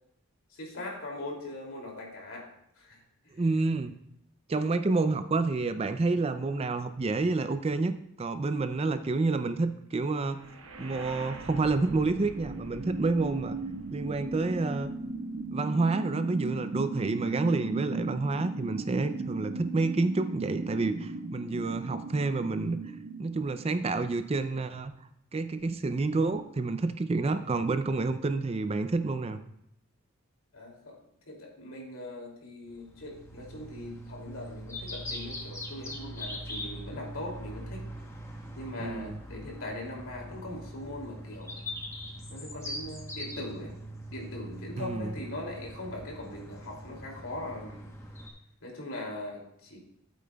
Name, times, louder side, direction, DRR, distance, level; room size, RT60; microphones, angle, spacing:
voice 1, 0.5-2.5 2.8-3.4 30.5-31.0 31.3-37.9 38.5-41.6 42.3-43.7 44.1-47.9 48.6-49.8, left 1 dB, 75° left, -1 dB, 2.6 m, -40 dB
voice 2, 3.3-3.9 4.5-10.4 10.8-13.6 13.9-14.9 15.5-22.8 23.2-24.9 25.3-29.4 38.8-39.2 44.8-45.2, right 3 dB, 30° right, 10 dB, 0.4 m, -29 dB
sound 1, 10.3-24.3, right 3 dB, 85° right, 1.1 m, -37 dB
sound 2, 32.7-48.3, equal, 15° left, 0.9 m, -42 dB
12.5 x 8.4 x 2.3 m, 0.76 s
head